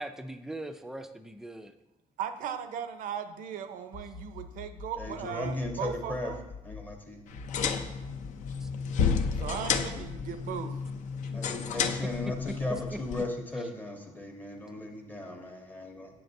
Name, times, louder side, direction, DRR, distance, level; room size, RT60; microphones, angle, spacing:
voice 1, 0.0-1.7 8.6-8.7 11.2-11.3 11.8-11.9 12.7-13.0 13.6-13.7, right 1 dB, 5° right, 8 dB, 0.3 m, -41 dB
voice 2, 2.2-6.4 9.3-10.7, right 8 dB, 75° right, 9 dB, 0.6 m, -37 dB
sound 1, 3.9-6.9 7.3-10.4, left 3 dB, 85° left, 1.0 m, -45 dB
voice 3, 5.0-6.3 6.6-7.2 11.3-16.1, left 1 dB, 15° left, 2 dB, 0.7 m, -36 dB
sound 2, 7.3-13.2, left 6 dB, 60° left, 0.5 m, -31 dB
7.7 x 5.8 x 2.6 m, 0.97 s
cardioid pair, 135°, 14 cm